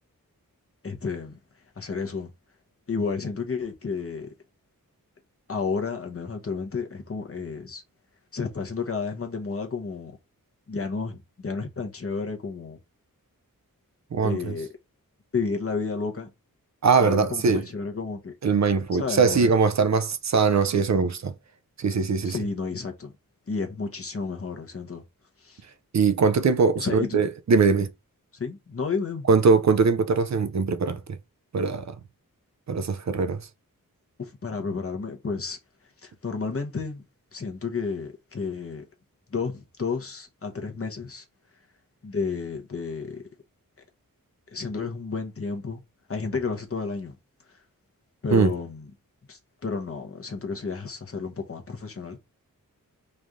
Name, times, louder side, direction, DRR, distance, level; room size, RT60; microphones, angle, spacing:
voice 1, 0.8-1.4 1.8-2.3 2.9-4.3 5.5-7.8 8.3-10.2 10.7-12.8 14.2-14.7 15.3-16.3 17.0-18.3 18.9-19.5 22.2-23.1 23.5-25.0 25.4-25.6 26.8-27.2 28.3-29.3 34.2-35.6 36.0-37.0 37.3-38.8 39.3-41.2 42.0-43.2 44.5-45.8 46.1-47.2 48.2-48.9 49.3-52.2, left 4 dB, 40° left, 0.9 m, -31 dB
voice 2, 14.1-14.5 16.8-17.6 18.4-21.3 21.8-22.4 25.9-27.9 29.3-31.2 31.5-32.0 32.7-33.5 48.3-48.5, right 5 dB, 55° right, 0.5 m, -21 dB
3.1 x 2.6 x 3.5 m
wide cardioid pair, 70°, 35 cm